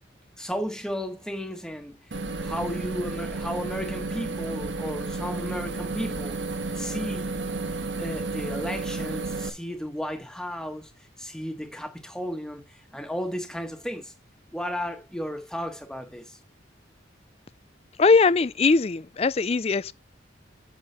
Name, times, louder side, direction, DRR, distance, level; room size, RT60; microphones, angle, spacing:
voice 1, 0.4-2.0 2.4-6.4 6.7-7.2 8.0-10.9 11.2-14.1 14.5-16.4, equal, 5° left, 1.3 m, -34 dB
sound 1, 2.1-9.5, right 3 dB, 75° right, 1.5 m, -32 dB
voice 2, 18.0-19.9, left 4 dB, 30° left, 0.4 m, -20 dB
9.0 x 3.7 x 6.7 m
head